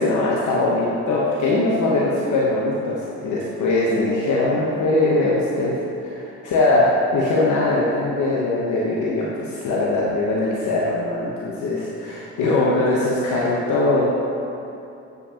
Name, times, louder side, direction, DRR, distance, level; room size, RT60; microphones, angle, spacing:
voice 1, 0.0-5.7 6.0-14.1, left 2 dB, 80° left, -5 dB, 1.0 m, -21 dB
7.9 x 7.5 x 2.9 m, 2.7 s
cardioid pair, 90°, 30 cm